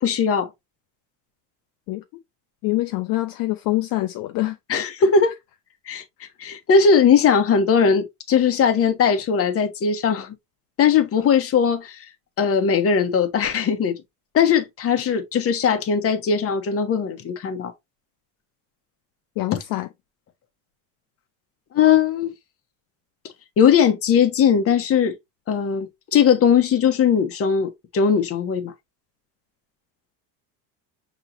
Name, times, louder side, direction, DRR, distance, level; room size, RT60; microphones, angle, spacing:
voice 1, 0.0-0.5 4.7-5.3 5.9-10.3 10.8-12.1 12.4-14.0 14.3-17.7 21.7-22.3 23.6-25.2 25.5-28.7, left 6 dB, 35° left, 0.9 m, -19 dB
voice 2, 2.6-4.6 19.4-19.9, left 18 dB, 55° left, 0.5 m, -25 dB
5.6 x 3.0 x 2.5 m
cardioid pair, 125°, 42 cm